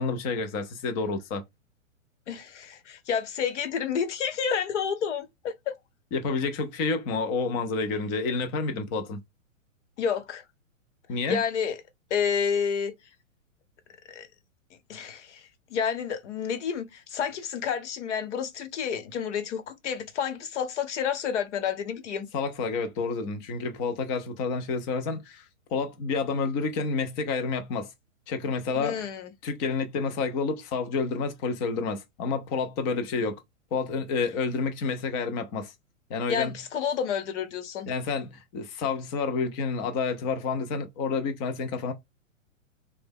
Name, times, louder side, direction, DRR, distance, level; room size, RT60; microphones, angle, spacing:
voice 1, 0.0-1.4 6.1-9.2 11.1-11.4 22.3-25.4 25.7-27.9 28.3-29.1 29.4-33.4 33.7-35.7 36.1-36.6 37.9-41.9, left 4 dB, 20° left, 0.3 m, -29 dB
voice 2, 2.3-5.7 10.0-10.4 11.3-11.8 12.1-12.9 14.1-14.3 14.9-22.3 28.7-29.3 36.3-37.9, left 7 dB, 60° left, 1.0 m, -30 dB
3.3 x 2.1 x 3.4 m
hypercardioid pair, 120°, 40 cm